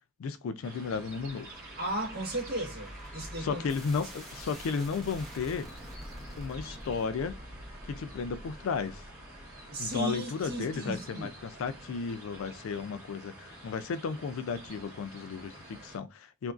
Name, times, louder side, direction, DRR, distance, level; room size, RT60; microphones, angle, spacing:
voice 1, 0.2-1.5 3.4-5.7 6.4-7.4 7.8-9.0 9.8-16.5, left 5 dB, 80° left, 0.3 m, -34 dB
sound 1, 0.6-16.0, right 1 dB, 15° right, 1.9 m, -48 dB
sound 2, 1.1-12.4, equal, ahead, 0.7 m, -49 dB
voice 2, 1.8-3.6 4.0-4.1 9.7-11.3, right 1 dB, 50° right, 1.4 m, -35 dB
2.8 x 2.5 x 2.3 m
head